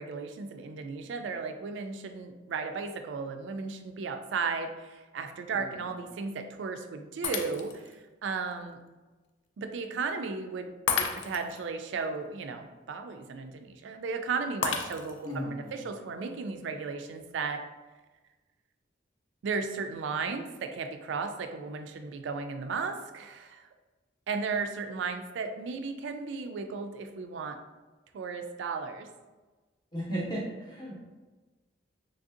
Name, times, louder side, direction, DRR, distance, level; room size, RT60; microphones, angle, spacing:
voice 1, 0.0-8.8 9.6-17.6 19.4-23.7 24.3-27.6 28.1-29.1, right 4 dB, 75° right, 6 dB, 0.3 m, -35 dB
Shatter, 7.2-7.9 8.5-8.6 10.9-11.6 14.6-15.4, left 6 dB, 75° left, 0.3 m, -32 dB
voice 2, 15.2-15.8 29.9-31.0, equal, 20° left, -5 dB, 0.6 m, -35 dB
3.3 x 2.6 x 2.5 m, 1.2 s
head